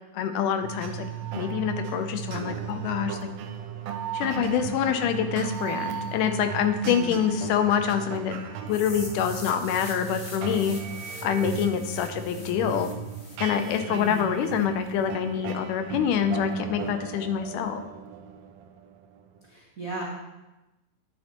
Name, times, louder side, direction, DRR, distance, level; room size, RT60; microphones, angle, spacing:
voice 1, 0.1-1.0 1.3-3.2 4.1-8.4 8.7-10.8 11.2-12.9 13.4-17.8, left 8 dB, 80° left, 8 dB, 2.1 m, -26 dB
sound 1, 0.6-19.4, right 8 dB, 80° right, 1.5 m, -36 dB
voice 2, 6.8-7.2 13.8-14.3 19.5-20.0, right 3 dB, 60° right, -4 dB, 0.8 m, -35 dB
sound 2, 8.7-14.6, left 2 dB, 45° left, 1.2 m, -44 dB
9.8 x 9.6 x 3.0 m, 1.0 s
omnidirectional pair, 3.8 m